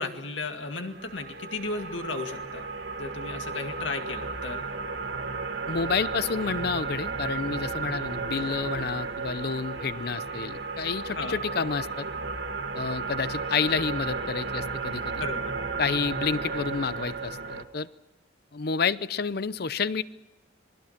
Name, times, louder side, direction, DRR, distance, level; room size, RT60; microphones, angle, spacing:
voice 1, 0.0-2.6 3.0-4.6 11.2-11.4 15.2-15.5, left 3 dB, 80° left, 6 dB, 2.2 m, -34 dB
sound 1, 0.8-17.6, right 4 dB, 70° right, 1.9 m, -33 dB
voice 2, 5.7-12.1 12.7-15.2 15.8-17.9 18.5-20.0, left 5 dB, 55° left, 17 dB, 0.6 m, -29 dB
27.0 x 21.0 x 5.9 m, 1.1 s
head